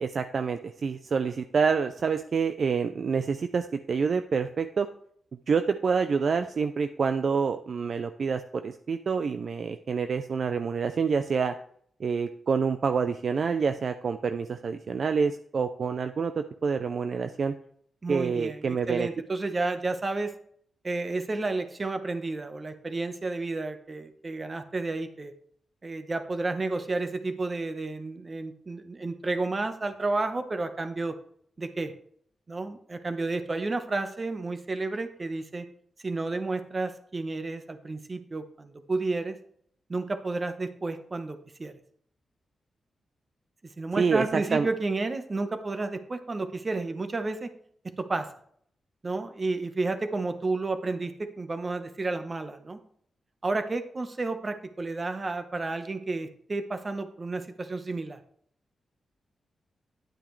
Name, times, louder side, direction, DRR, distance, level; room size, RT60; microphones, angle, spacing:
voice 1, 0.0-4.9 5.5-11.5 12.0-17.6 18.1-19.1 44.0-44.7, right 5 dB, 55° right, 8 dB, 0.5 m, -27 dB
voice 2, 18.0-20.3 20.8-25.3 25.8-31.2 31.6-31.9 32.5-35.6 36.0-39.4 39.9-41.7 43.8-47.5 48.0-48.3 49.0-52.8 53.4-58.2, right 3 dB, 30° right, 8 dB, 1.1 m, -31 dB
10.5 x 8.9 x 3.2 m, 0.62 s
wide cardioid pair, 115°, 0 cm